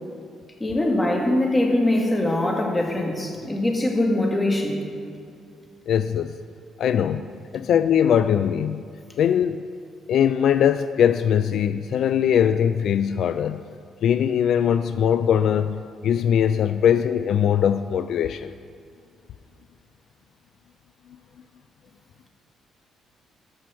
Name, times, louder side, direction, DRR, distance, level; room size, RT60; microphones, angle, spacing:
voice 1, 0.6-4.8, left 1 dB, 15° left, 0 dB, 2.0 m, -22 dB
voice 2, 5.9-6.3 6.8-7.3 7.5-8.8 9.2-9.6 10.1-13.6 14.0-18.5, left 9 dB, 70° left, 11 dB, 0.3 m, -21 dB
13.0 x 6.1 x 5.7 m, 2.4 s
cardioid pair, 90°, 0 cm